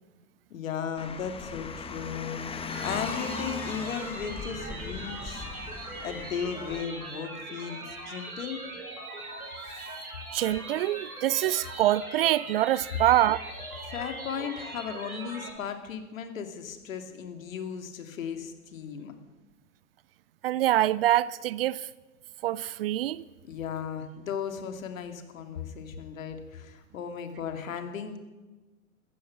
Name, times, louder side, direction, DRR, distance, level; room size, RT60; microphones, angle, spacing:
voice 1, 0.5-2.4 2.8-5.5 6.0-8.6 13.9-19.2 23.4-28.2, left 7 dB, 65° left, 2.4 m, -36 dB
Car, 1.0-6.8, left 4 dB, 15° left, 1.3 m, -38 dB
sound 1, 2.7-15.5, right 2 dB, 80° right, 5.7 m, -41 dB
voice 2, 10.3-13.4 20.4-21.9 22.4-23.2, right 13 dB, 45° right, 0.4 m, -25 dB
16.5 x 14.5 x 6.0 m
figure-of-eight pair, 100°, 43 cm